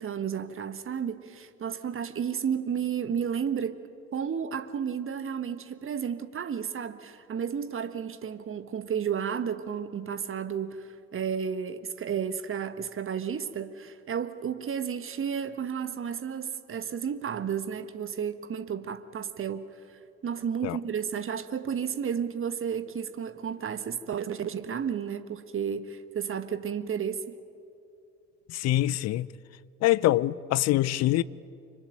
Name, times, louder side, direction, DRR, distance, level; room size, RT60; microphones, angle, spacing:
voice 1, 0.0-3.8 4.1-19.7 20.2-27.4, right 7 dB, 30° right, 1.4 m, -32 dB
voice 2, 28.5-29.3 29.8-31.2, left 15 dB, 40° left, 0.6 m, -24 dB
25.0 x 24.5 x 9.2 m
figure-of-eight pair, 55°, 39 cm